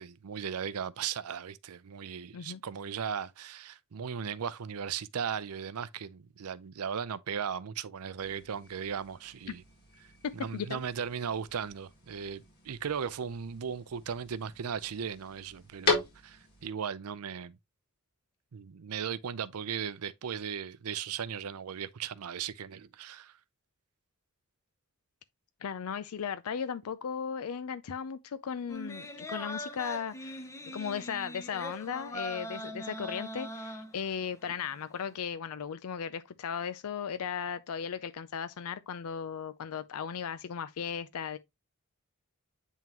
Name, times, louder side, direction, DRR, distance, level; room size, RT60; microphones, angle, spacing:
voice 1, 0.0-9.6 10.3-17.6 18.5-23.4, right 7 dB, 80° right, 0.5 m, -37 dB
sound 1, 8.2-16.7, left 3 dB, 50° left, 4.2 m, -38 dB
voice 2, 10.2-10.8 25.6-41.4, left 7 dB, 75° left, 0.4 m, -36 dB
sound 2, 28.7-34.3 34.7-34.8, left 1 dB, 15° left, 0.7 m, -41 dB
9.1 x 3.7 x 2.9 m
head